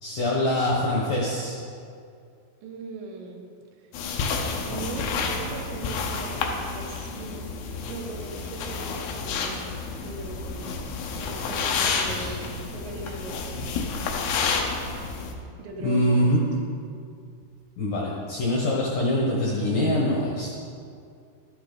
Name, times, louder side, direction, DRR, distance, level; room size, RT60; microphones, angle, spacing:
voice 1, 0.0-1.6 11.8-12.3 15.8-16.4 17.8-20.5, left 1 dB, 75° left, -3 dB, 2.0 m, -24 dB
voice 2, 2.6-3.4 3.8-3.9 4.6-7.5 7.8-10.8 11.2-14.0 15.6-16.5, right 3 dB, 80° right, 1 dB, 2.9 m, -39 dB
sound 1, 3.9-15.3, left 4 dB, 90° left, 2.0 m, -30 dB
11.5 x 9.6 x 4.0 m, 2.3 s
omnidirectional pair, 5.4 m